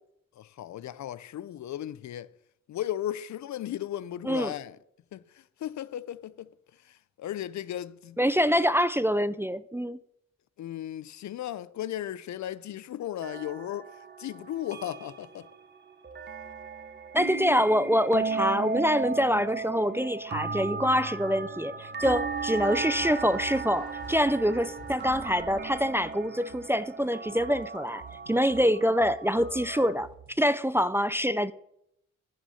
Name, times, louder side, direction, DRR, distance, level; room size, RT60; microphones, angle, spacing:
voice 1, 0.4-2.3 2.7-4.8 5.1-6.5 6.8-8.2 10.6-13.9 14.2-15.5, left 12 dB, 70° left, 0.5 m, -36 dB
voice 2, 8.2-10.0 17.1-30.1 30.4-31.5, equal, 10° right, 0.4 m, -25 dB
sound 1, 13.2-29.9, right 4 dB, 35° right, 1.1 m, -36 dB
sound 2, 22.0-26.3, left 2 dB, 35° left, 4.4 m, -49 dB
sound 3, 22.5-30.5, right 9 dB, 70° right, 1.5 m, -51 dB
10.5 x 6.2 x 7.0 m
cardioid pair, 95°, 30 cm